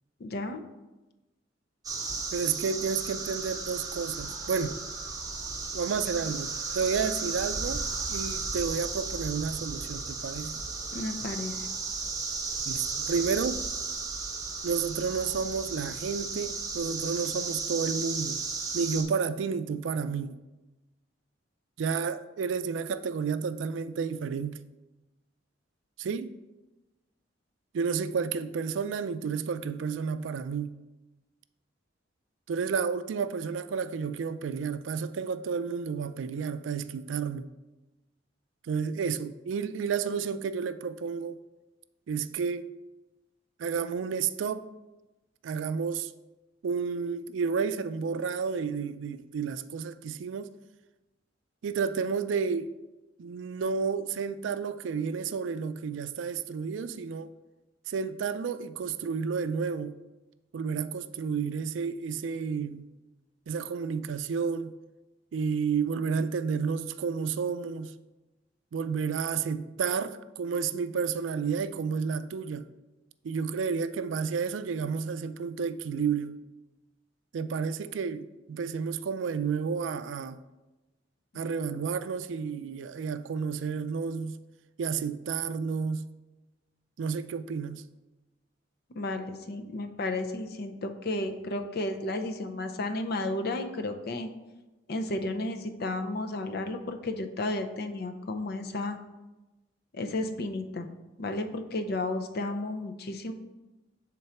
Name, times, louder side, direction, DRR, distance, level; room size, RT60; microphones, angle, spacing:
voice 1, 0.2-0.6 10.9-11.7 88.9-94.3 94.9-99.0 99.9-100.9 101.2-103.3, left 2 dB, 55° left, 0.5 m, -33 dB
sound 1, 1.8-19.0, right 4 dB, 20° right, 0.9 m, -35 dB
voice 2, 2.3-4.8 5.7-10.6 12.7-13.6 14.6-18.4 18.7-20.4 21.8-24.6 26.0-26.3 27.7-30.8 32.5-37.5 38.6-41.4 42.1-42.7 43.6-44.7 45.4-46.1 46.6-50.5 51.6-52.7 53.2-57.3 57.9-60.0 60.5-62.9 63.5-64.8 65.3-67.9 68.7-72.7 73.2-76.4 77.3-80.4 81.3-84.4 84.8-86.1 87.0-87.8, right 6 dB, 80° right, 0.4 m, -31 dB
6.9 x 3.8 x 4.3 m
head